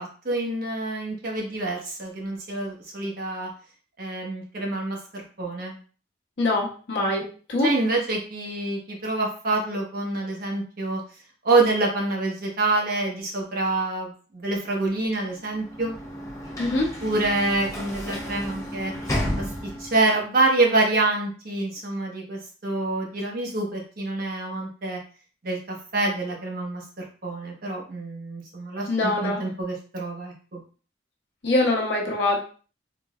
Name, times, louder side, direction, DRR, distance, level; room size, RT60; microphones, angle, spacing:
voice 1, 0.0-3.5 4.0-5.8 7.6-11.0 11.4-16.0 17.0-18.9 19.4-19.5 19.8-25.0 25.4-30.6, right 2 dB, 55° right, -1 dB, 1.1 m, -26 dB
voice 2, 6.4-7.2 7.5-7.7 16.6-16.9 28.9-29.4 31.4-32.4, left 2 dB, 70° left, -1 dB, 0.9 m, -23 dB
Sliding door / Slam, 15.4-20.1, equal, 20° left, 0.9 m, -32 dB
3.9 x 3.1 x 2.4 m, 0.39 s
head